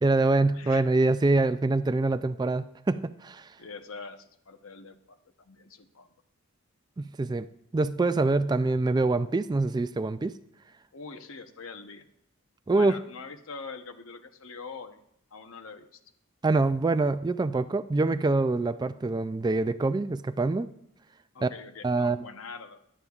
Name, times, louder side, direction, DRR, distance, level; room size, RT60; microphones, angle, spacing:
voice 1, 0.0-3.5 7.0-7.5 7.7-10.3 12.7-13.0 16.4-20.7 21.4-21.5 21.8-22.2, right 3 dB, 20° right, 12 dB, 0.3 m, -25 dB
voice 2, 0.5-0.9 3.6-6.1 10.9-12.1 12.7-15.0 15.3-16.0 21.3-22.8, left 4 dB, 65° left, 8 dB, 0.9 m, -43 dB
16.0 x 11.0 x 2.4 m, 0.76 s
head